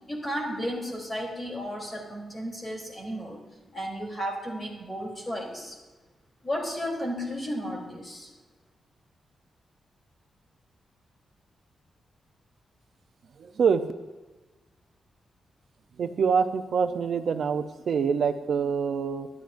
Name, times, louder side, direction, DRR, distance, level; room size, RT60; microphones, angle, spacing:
voice 1, 0.1-3.4 3.7-5.8 6.4-8.3, equal, 20° left, 0 dB, 3.3 m, -33 dB
voice 2, 13.4-13.9 16.0-19.3, right 6 dB, 60° right, 8 dB, 0.6 m, -25 dB
23.5 x 12.0 x 2.6 m, 1.2 s
wide cardioid pair, 155°, 0 cm